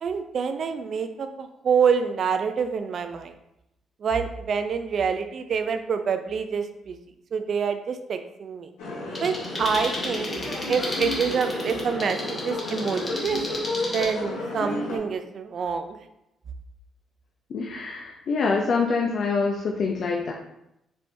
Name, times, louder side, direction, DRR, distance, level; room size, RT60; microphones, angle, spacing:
voice 1, 0.0-3.3 4.0-7.0 7.3-8.7 9.2-10.3 10.7-13.4 13.9-16.0, right 6 dB, 55° right, 8 dB, 0.4 m, -26 dB
sound 1, 8.8-15.0, left 2 dB, 90° left, 1.0 m, -32 dB
sound 2, 9.1-14.1, left 1 dB, 30° left, 1.0 m, -34 dB
voice 2, 17.5-20.3, left 4 dB, 60° left, 0 dB, 0.5 m, -25 dB
4.3 x 3.3 x 2.6 m, 0.86 s
cardioid pair, 90°, 0 cm